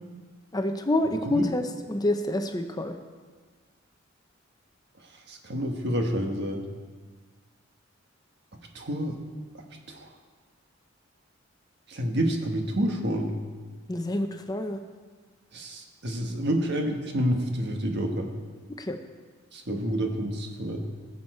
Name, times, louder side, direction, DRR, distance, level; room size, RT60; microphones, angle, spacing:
voice 1, 0.5-1.6 1.9-3.0 13.9-14.8 18.8-19.0, left 1 dB, 20° left, 6 dB, 0.7 m, -27 dB
voice 2, 5.3-6.6 8.7-9.2 9.9-10.1 11.9-13.3 15.5-18.3 19.5-20.9, equal, 60° right, 3 dB, 1.5 m, -28 dB
20.0 x 7.3 x 4.4 m, 1.5 s
head